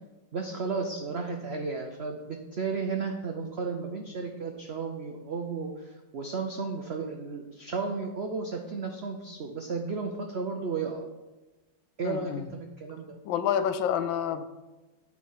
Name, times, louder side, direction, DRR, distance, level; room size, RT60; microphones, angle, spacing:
voice 1, 0.3-11.1 12.0-13.1, right 4 dB, 85° right, 3 dB, 0.5 m, -33 dB
voice 2, 12.0-12.5 13.2-14.4, left 9 dB, 85° left, 12 dB, 1.3 m, -28 dB
8.6 x 4.7 x 5.5 m, 1.1 s
omnidirectional pair, 2.1 m